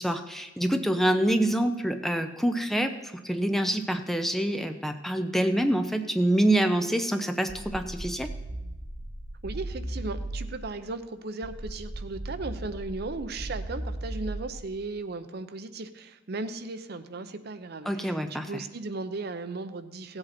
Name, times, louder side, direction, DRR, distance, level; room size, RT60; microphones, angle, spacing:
voice 1, 0.0-8.3 17.9-18.6, right 1 dB, ahead, 7 dB, 0.6 m, -26 dB
sound 1, 7.5-10.7 11.4-14.7, right 1 dB, 80° right, 1.7 m, -37 dB
voice 2, 9.4-20.2, right 3 dB, 55° right, 11 dB, 0.7 m, -36 dB
16.5 x 7.9 x 4.3 m, 1.0 s
head